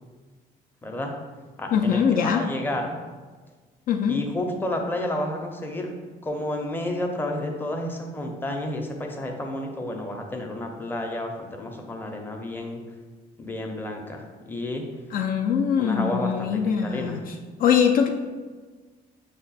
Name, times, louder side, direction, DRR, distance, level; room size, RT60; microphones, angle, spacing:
voice 1, 0.8-1.1 1.6-3.0 4.1-5.9 6.2-12.8 13.4-14.8 15.8-16.5 16.8-17.2, left 1 dB, 10° left, 1 dB, 0.6 m, -31 dB
voice 2, 1.7-2.4 3.9-4.2 15.1-17.3 17.6-18.1, left 7 dB, 60° left, 3 dB, 0.4 m, -22 dB
5.5 x 2.2 x 4.0 m, 1.4 s
cardioid pair, 110°, 17 cm